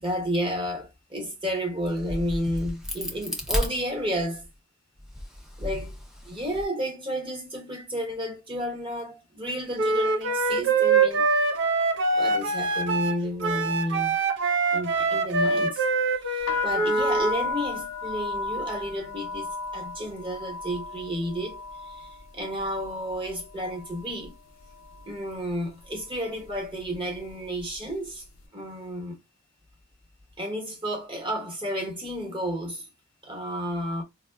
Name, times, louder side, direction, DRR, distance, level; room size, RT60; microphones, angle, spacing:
voice 1, 0.0-4.5 5.6-6.0 6.2-11.3 12.1-14.2 14.7-15.9 16.2-24.4 25.0-28.3 28.5-29.2 30.4-32.9 33.2-34.0, equal, 25° right, 0.9 m, -31 dB
Crack, 1.8-4.5 5.0-6.6, left 1 dB, 5° right, 0.4 m, -33 dB
Wind instrument woodwind instrument, 9.8-17.3, right 4 dB, 60° right, 0.5 m, -24 dB
sound 1, 16.4-24.3 24.6-25.3 25.9-26.2 26.4-27.9, left 4 dB, 70° left, 0.5 m, -34 dB
4.4 x 2.1 x 2.2 m
head